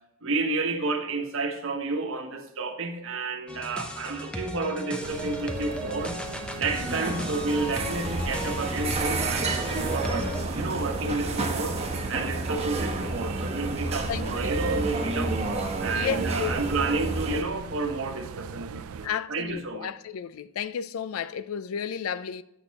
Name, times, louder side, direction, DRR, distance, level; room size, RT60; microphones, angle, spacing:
voice 1, 0.2-6.2 6.6-15.3 15.8-19.9, right 3 dB, 65° right, 1.1 m, -31 dB
sound 1, 3.5-10.4, left 1 dB, 5° left, 0.6 m, -36 dB
sound 2, 5.0-19.1, right 6 dB, 90° right, 0.4 m, -38 dB
sound 3, 6.7-17.4, right 2 dB, 30° right, 0.9 m, -30 dB
voice 2, 14.1-14.6 15.9-16.5 19.0-22.4, left 7 dB, 75° left, 0.4 m, -32 dB
8.0 x 6.3 x 2.9 m
head